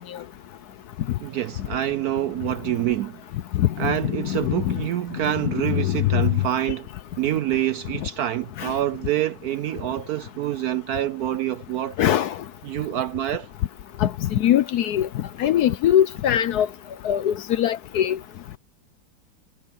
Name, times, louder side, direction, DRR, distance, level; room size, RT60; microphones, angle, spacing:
voice 1, 1.2-3.2 3.8-6.9 7.2-12.0 12.6-13.5, right 12 dB, 75° right, 0.9 m, -26 dB
voice 2, 3.5-4.8 5.4-6.3 8.6-8.7 12.0-12.4 14.0-16.7 17.0-18.2, left 11 dB, 70° left, 1.1 m, -22 dB
omnidirectional pair, 2.1 m